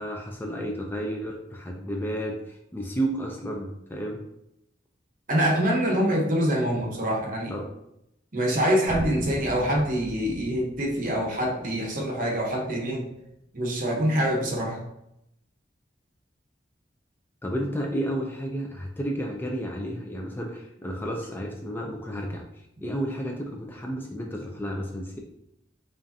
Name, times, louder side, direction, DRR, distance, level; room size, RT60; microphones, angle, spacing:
voice 1, 0.0-4.2 7.5-7.7 17.4-22.4 22.8-25.2, equal, 10° left, 0 dB, 0.4 m, -32 dB
voice 2, 5.3-7.5 8.3-13.1 13.5-14.8, equal, 50° right, -1 dB, 1.0 m, -25 dB
sound 1, 8.9-12.8, left 1 dB, 30° right, 1.4 m, -39 dB
5.2 x 2.5 x 2.7 m, 0.81 s
head